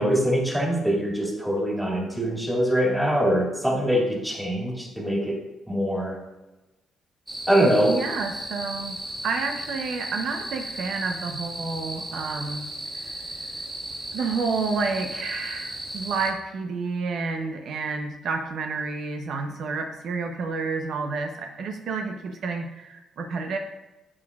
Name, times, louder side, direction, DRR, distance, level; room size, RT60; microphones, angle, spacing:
voice 1, 0.0-5.4 5.7-6.2 7.5-8.0, equal, 5° right, -2 dB, 2.2 m, -23 dB
sound 1, 7.3-16.3, right 1 dB, 20° right, 1.7 m, -35 dB
voice 2, 7.9-9.0 9.2-12.7 13.0-13.2 14.1-23.6, right 4 dB, 70° right, 4 dB, 0.7 m, -30 dB
9.5 x 7.3 x 2.3 m, 1.0 s
cardioid pair, 90°, 0 cm